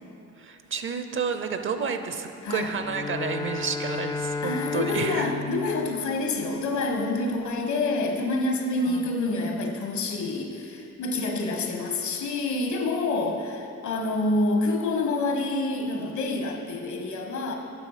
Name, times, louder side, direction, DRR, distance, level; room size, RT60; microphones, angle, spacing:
voice 1, 0.4-5.3 8.9-9.1 11.4-11.7 13.3-13.4, right 5 dB, 45° right, 8 dB, 0.7 m, -31 dB
Bowed string instrument, 2.8-6.9, left 4 dB, 15° left, 0.4 m, -33 dB
voice 2, 4.4-17.5, left 2 dB, 70° left, 3 dB, 1.4 m, -27 dB
9.2 x 7.0 x 5.1 m, 2.8 s
cardioid pair, 90°, 30 cm